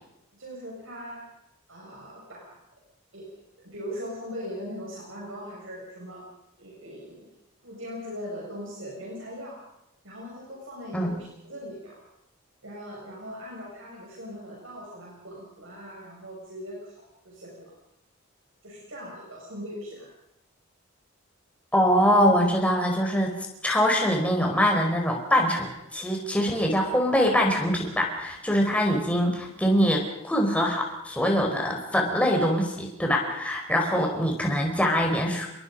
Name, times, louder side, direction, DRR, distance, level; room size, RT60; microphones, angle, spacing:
voice 1, 0.3-1.3 1.7-2.6 3.1-3.3 3.6-6.3 6.6-7.3 7.6-9.6 10.0-12.0 12.6-17.0 17.2-17.7 18.6-20.1 33.9-34.2, equal, 65° right, -3 dB, 7.0 m, -40 dB
voice 2, 21.7-23.4 23.6-35.5, equal, 5° left, 1 dB, 4.6 m, -23 dB
27.5 x 22.5 x 5.4 m, 0.86 s
head